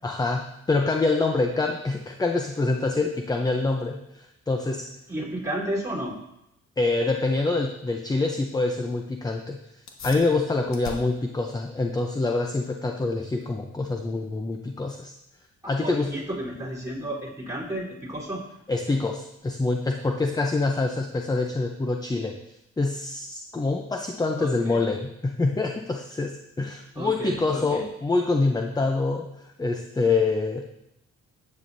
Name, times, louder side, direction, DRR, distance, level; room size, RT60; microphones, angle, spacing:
voice 1, 0.0-4.9 6.8-9.6 10.0-15.1 15.7-16.1 18.7-22.4 22.8-30.7, left 3 dB, 15° left, 4 dB, 0.6 m, -26 dB
voice 2, 5.1-6.2 15.8-18.4 24.4-24.8 27.0-27.9, right 1 dB, 10° right, -5 dB, 3.7 m, -32 dB
sound 1, 9.9-19.8, left 3 dB, 65° left, 1.5 m, -48 dB
12.0 x 8.5 x 2.7 m, 0.84 s
cardioid pair, 90°, 30 cm